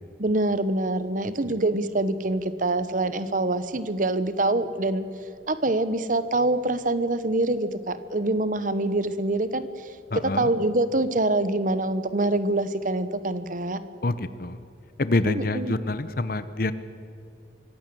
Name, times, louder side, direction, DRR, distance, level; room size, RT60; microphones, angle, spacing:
voice 1, 0.2-5.0 5.5-9.6 10.2-13.8 15.3-15.7, right 2 dB, 45° right, 13 dB, 1.1 m, -25 dB
voice 2, 10.1-10.5 14.0-14.6 15.0-16.7, left 2 dB, 50° left, 13 dB, 0.8 m, -26 dB
24.0 x 16.0 x 7.8 m, 2.7 s
head